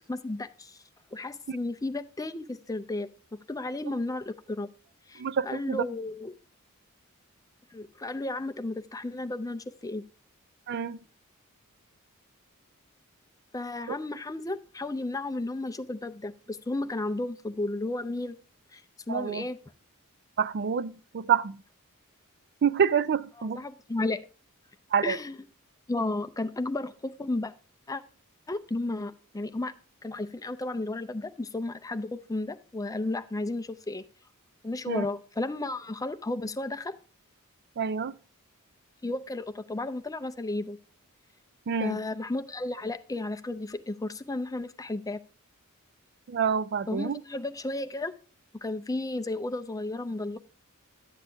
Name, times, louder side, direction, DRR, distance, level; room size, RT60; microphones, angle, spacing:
voice 1, 0.1-0.8 1.1-4.7 5.1-6.3 7.7-10.0 13.5-18.4 18.7-18.8 19.1-19.6 23.4-24.3 25.0-25.4 25.9-27.5 27.9-28.0 28.5-29.7 30.0-34.0 34.6-37.0 39.0-40.8 41.8-45.2 46.9-48.1 48.6-50.4, left 2 dB, 15° left, 0.5 m, -33 dB
voice 2, 5.2-5.8 10.7-11.0 19.1-19.4 20.4-21.6 22.6-23.6 24.9-25.2 34.9-35.1 37.8-38.1 41.7-42.0 46.3-47.2, right 7 dB, 50° right, 0.4 m, -27 dB
12.0 x 8.0 x 3.4 m
head